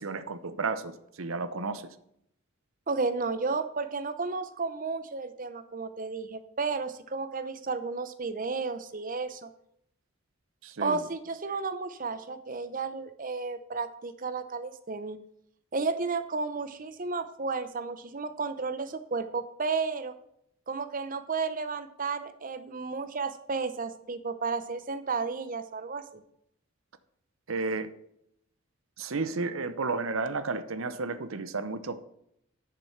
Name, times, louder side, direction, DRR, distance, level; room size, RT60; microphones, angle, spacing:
voice 1, 0.0-1.9 10.6-11.0 27.5-27.9 29.0-32.0, right 3 dB, 75° right, 11 dB, 0.8 m, -32 dB
voice 2, 2.9-9.5 10.8-15.2 15.7-20.1 20.7-26.2, right 4 dB, 40° right, 12 dB, 0.8 m, -33 dB
10.5 x 6.8 x 5.8 m, 0.75 s
head